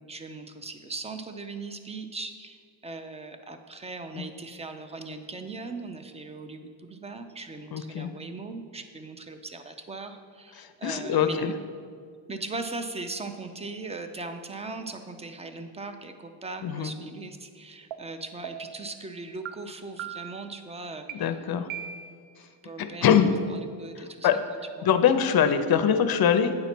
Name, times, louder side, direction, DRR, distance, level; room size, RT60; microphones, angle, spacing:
voice 1, 0.1-11.5 12.3-21.3 22.6-24.3 24.8-24.9, right 3 dB, 15° right, 8 dB, 0.3 m, -39 dB
voice 2, 7.7-8.1 10.6-11.5 16.6-16.9 21.1-21.7 22.8-23.3 24.2-24.4 24.8-26.6, left 8 dB, 50° left, 10 dB, 0.6 m, -23 dB
sound 1, 17.9-18.0 18.4-18.8 19.5-19.6 20.0-20.5 21.1-21.2 21.7-22.3, right 10 dB, 70° right, 0.6 m, -38 dB
8.8 x 4.2 x 5.8 m, 2.2 s
wide cardioid pair, 140°, 49 cm